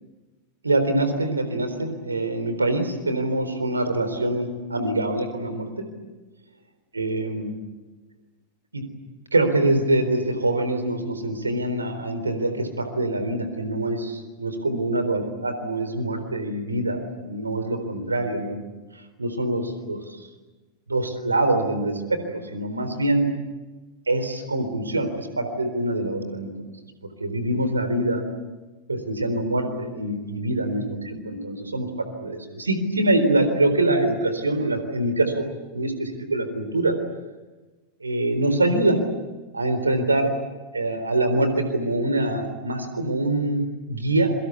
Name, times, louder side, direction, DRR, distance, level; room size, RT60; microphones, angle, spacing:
voice 1, 0.6-5.9 6.9-7.5 8.7-8.8 9.3-18.5 18.9-20.3 20.9-23.3 24.1-26.5 27.2-28.2 28.9-35.5 35.7-37.0 38.0-39.0 39.5-40.3 40.7-44.3, right 2 dB, 80° right, 9 dB, 4.0 m, -24 dB
27.0 x 24.0 x 8.4 m, 1.2 s
figure-of-eight pair, 90°, 0 cm